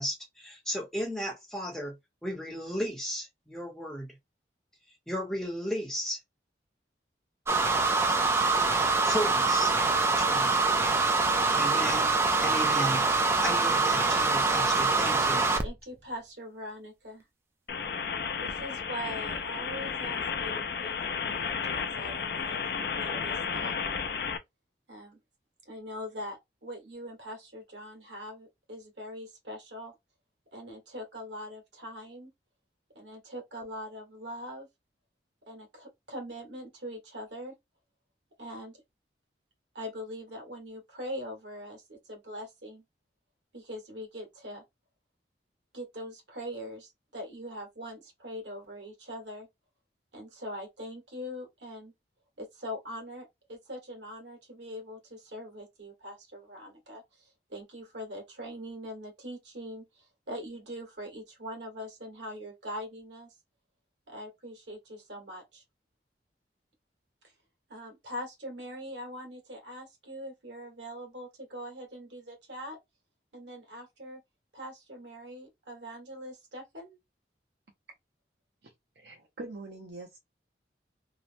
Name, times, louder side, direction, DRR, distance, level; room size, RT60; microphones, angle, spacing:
voice 1, 0.0-2.0 2.2-4.2 5.1-6.2 9.0-10.6 11.5-12.1 12.4-13.0 13.4-15.5, equal, 5° left, 0.9 m, -35 dB
sound 1, 7.5-15.7, right 3 dB, 15° right, 0.3 m, -25 dB
voice 2, 15.6-17.2 18.4-23.8 24.9-25.2 25.6-29.9 30.5-32.3 32.9-34.7 35.5-37.5 38.4-38.8 39.7-42.8 43.5-44.6 45.7-49.5 50.1-51.9 52.4-63.3 64.1-65.6 67.2-67.3 67.7-72.8 73.3-74.2 74.5-77.0, equal, 85° right, 1.4 m, -42 dB
sound 2, 17.7-24.4, left 6 dB, 60° left, 0.4 m, -33 dB
voice 3, 78.6-80.2, right 2 dB, 70° right, 0.8 m, -44 dB
2.9 x 2.1 x 2.6 m
head